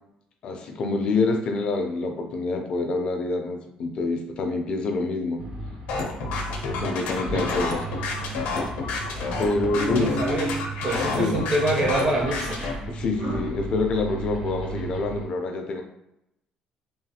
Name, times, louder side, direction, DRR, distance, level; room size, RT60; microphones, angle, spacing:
voice 1, 0.4-5.4 6.8-7.9 9.4-10.1 11.1-11.3 12.9-15.8, left 3 dB, 40° left, 4 dB, 0.4 m, -26 dB
sound 1, 5.4-15.3, right 2 dB, 85° right, 1.5 m, -34 dB
sound 2, 5.9-12.7, left 3 dB, 85° left, 0.6 m, -29 dB
voice 2, 10.0-12.6, right 1 dB, 25° right, -3 dB, 0.4 m, -26 dB
3.1 x 2.3 x 2.8 m, 0.83 s
cardioid pair, 165°, 2 cm